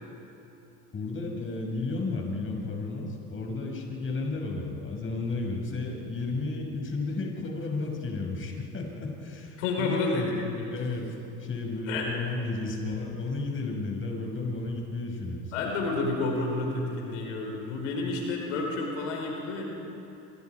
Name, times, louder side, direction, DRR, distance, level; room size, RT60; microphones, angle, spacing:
voice 1, 0.9-10.4 10.7-11.1 11.4-15.4, left 3 dB, 35° left, 0 dB, 6.1 m, -33 dB
voice 2, 9.6-10.7 11.9-12.0 15.5-19.6, left 3 dB, 85° left, 0 dB, 4.8 m, -30 dB
28.0 x 26.5 x 4.9 m, 3.0 s
supercardioid pair, 90°, 37 cm